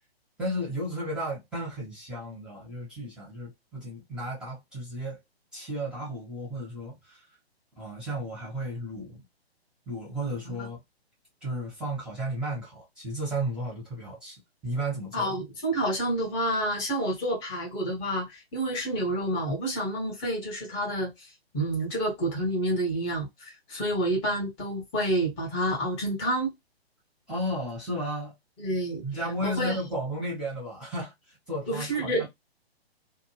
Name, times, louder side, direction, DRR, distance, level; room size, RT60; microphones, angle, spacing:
voice 1, 0.4-5.2 5.5-7.2 7.8-9.2 9.9-10.8 11.4-15.3 27.3-28.3 29.0-32.3, right 1 dB, 5° right, 1.0 m, -34 dB
voice 2, 15.1-21.3 21.5-26.5 28.6-29.0 29.4-29.8 31.7-32.3, right 1 dB, 20° left, 1.1 m, -29 dB
2.6 x 2.2 x 3.1 m
figure-of-eight pair, 130°, 32 cm